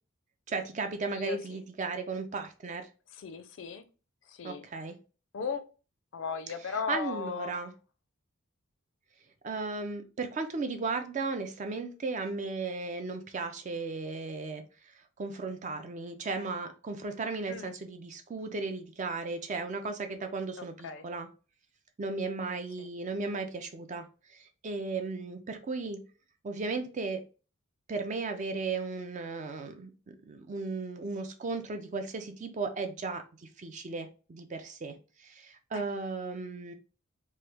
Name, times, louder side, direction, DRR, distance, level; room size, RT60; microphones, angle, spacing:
voice 1, 0.5-2.9 4.4-5.0 6.6-7.7 9.4-14.6 15.2-21.3 22.0-26.0 26.4-27.2 27.9-33.2 33.6-36.7, right 3 dB, 35° right, 0.4 m, -35 dB
voice 2, 1.1-1.6 3.2-3.8 4.3-4.6 5.3-5.6 6.1-7.5 17.5-17.7 20.6-21.0 35.7-35.8, left 6 dB, 60° left, 0.4 m, -37 dB
3.1 x 2.3 x 3.3 m
head